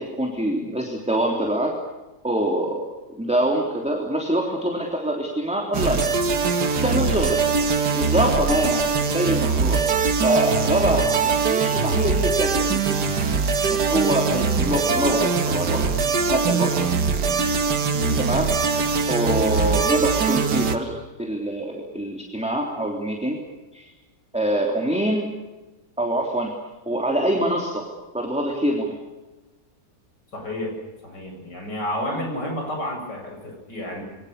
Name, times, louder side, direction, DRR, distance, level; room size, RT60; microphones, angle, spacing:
voice 1, 0.0-1.8 2.2-6.0 6.8-15.9 16.3-16.8 18.2-18.5 19.1-20.9 21.2-23.4 23.7-23.9 24.3-25.3 26.0-26.5 26.8-27.8 28.1-28.9 32.1-32.2, right 1 dB, 5° right, 0 dB, 3.4 m, -25 dB
sound 1, 5.7-20.8, right 5 dB, 70° right, 2.3 m, -22 dB
voice 2, 17.9-18.3 30.3-30.7 31.0-34.0, left 1 dB, 80° left, 2 dB, 8.7 m, -30 dB
28.5 x 23.5 x 6.8 m, 1.1 s
omnidirectional pair, 1.8 m